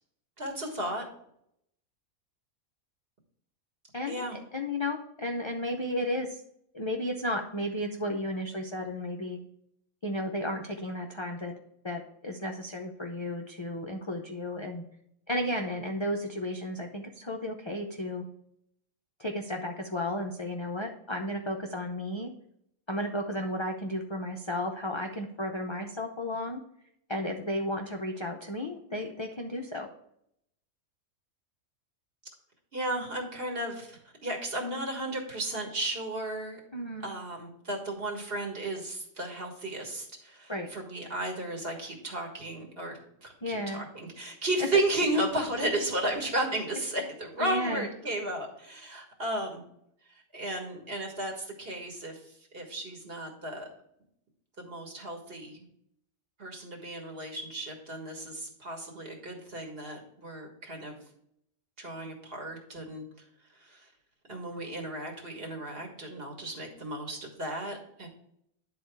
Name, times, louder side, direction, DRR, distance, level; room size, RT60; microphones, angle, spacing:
voice 1, 0.4-1.0 4.1-4.4 32.7-36.6 37.0-49.6 50.1-53.7 54.6-55.7 56.4-61.0 61.8-63.0 63.6-63.9 64.3-68.1, right 1 dB, 45° right, 1 dB, 1.7 m, -34 dB
voice 2, 3.9-4.3 4.5-6.4 6.7-9.4 10.0-11.5 11.8-14.8 15.3-18.3 19.2-22.3 22.9-26.6 27.1-29.9 36.7-37.1 40.5-40.7 43.4-43.9 47.4-47.9, left 1 dB, 40° left, 2 dB, 0.4 m, -33 dB
10.0 x 4.0 x 4.6 m, 0.74 s
omnidirectional pair, 1.5 m